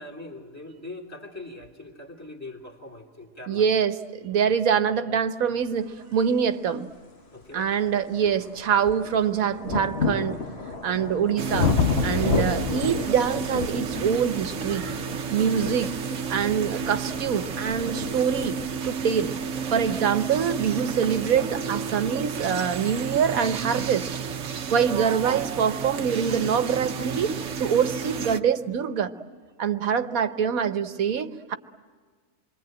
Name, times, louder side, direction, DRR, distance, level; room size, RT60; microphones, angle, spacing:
voice 1, 0.0-3.6 7.3-7.7, left 2 dB, 10° left, 0 dB, 2.5 m, -41 dB
voice 2, 3.5-6.9 7.5-10.4 10.8-11.7 12.0-14.9 15.3-16.0 16.3-18.6 18.8-19.3 19.7-24.1 24.7-27.3 27.6-29.1 29.6-31.5, right 7 dB, 85° right, 10 dB, 1.5 m, -24 dB
sound 1, 6.8-6.9 7.4-22.1 23.0-23.1, left 4 dB, 50° left, 1.6 m, -31 dB
sound 2, 11.4-28.4, right 6 dB, 60° right, 1.3 m, -32 dB
27.0 x 23.0 x 8.9 m, 1.5 s
omnidirectional pair, 1.4 m